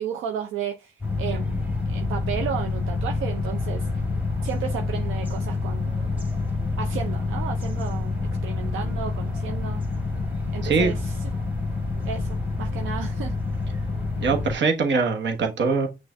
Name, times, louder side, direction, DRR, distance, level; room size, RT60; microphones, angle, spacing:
voice 1, 0.0-3.9 4.4-6.0 6.8-9.8 10.5-11.1 12.0-13.3, right 8 dB, 90° right, 0.5 m, -33 dB
sound 1, 1.0-14.5, left 3 dB, 10° right, 2.0 m, -27 dB
voice 2, 14.2-15.9, right 4 dB, 65° right, 1.2 m, -22 dB
6.1 x 2.5 x 3.3 m
cardioid pair, 70°, 20 cm